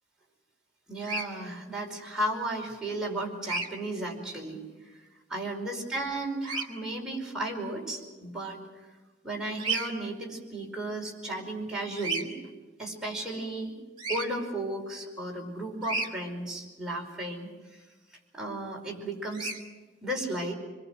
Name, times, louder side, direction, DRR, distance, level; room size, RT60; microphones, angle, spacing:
voice 1, 0.9-4.6 5.3-8.6 9.2-12.3 12.8-13.7 14.1-17.8 18.3-19.5 20.0-20.5, right 1 dB, 5° right, -3 dB, 5.1 m, -34 dB
Bird vocalization bird call bird song, 1.0-1.3 3.4-3.7 6.4-6.6 9.6-9.9 12.0-12.2 14.0-14.2 15.8-16.1 19.3-19.6, right 3 dB, 30° right, 2.5 m, -31 dB
26.0 x 22.0 x 6.2 m, 1.2 s
head